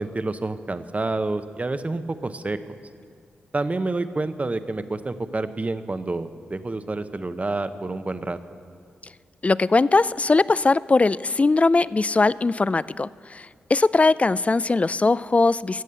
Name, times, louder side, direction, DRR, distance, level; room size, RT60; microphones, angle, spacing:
voice 1, 0.0-2.6 3.5-8.4, right 2 dB, 30° right, 11 dB, 0.8 m, -28 dB
voice 2, 9.4-15.8, left 3 dB, 30° left, 19 dB, 0.3 m, -20 dB
14.0 x 8.2 x 6.9 m, 2.3 s
cardioid pair, 45°, 4 cm